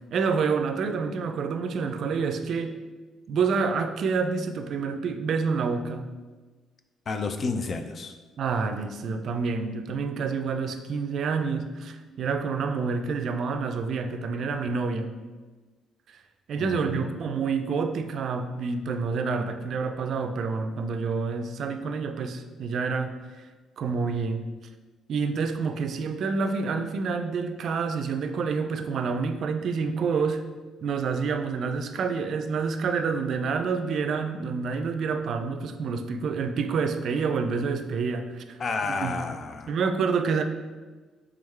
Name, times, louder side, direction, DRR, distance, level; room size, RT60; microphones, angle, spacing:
voice 1, 0.1-2.8 3.3-6.1 8.4-15.1 16.1-16.2 16.5-23.1 23.8-24.4 25.1-30.4 30.8-39.2 39.7-40.4, right 5 dB, 65° right, 7 dB, 0.3 m, -28 dB
voice 2, 7.1-8.1 16.6-17.1 38.6-39.7, left 4 dB, 45° left, 7 dB, 0.4 m, -31 dB
3.5 x 3.4 x 3.2 m, 1.3 s
supercardioid pair, 80°, 0 cm